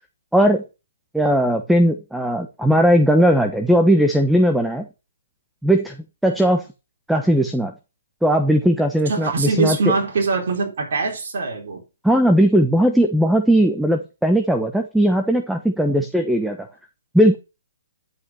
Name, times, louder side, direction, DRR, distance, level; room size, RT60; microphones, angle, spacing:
voice 1, 0.3-0.6 1.1-4.9 5.6-6.0 6.2-6.6 7.1-7.7 8.2-9.8 12.0-16.6 17.1-17.4, equal, ahead, 1.1 m, -18 dB
voice 2, 9.1-11.8, right 4 dB, 60° right, 4.1 m, -23 dB
11.0 x 5.8 x 6.4 m
hypercardioid pair, 135°, 0 cm